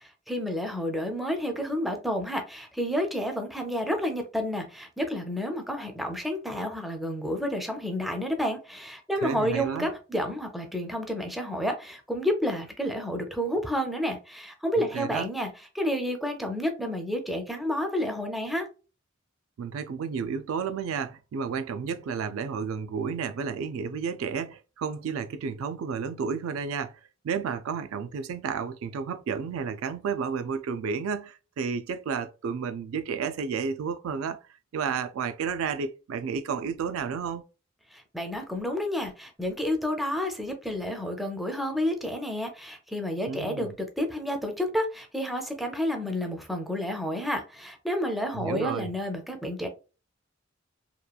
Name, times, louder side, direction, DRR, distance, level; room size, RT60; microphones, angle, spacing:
voice 1, 0.0-18.7 37.9-49.7, equal, ahead, 0.4 m, -30 dB
voice 2, 9.2-9.9 14.9-15.3 19.6-27.0 27.2-34.4 34.7-37.4 43.2-43.8 48.3-48.9, right 6 dB, 85° right, 0.3 m, -31 dB
2.9 x 2.2 x 2.2 m
head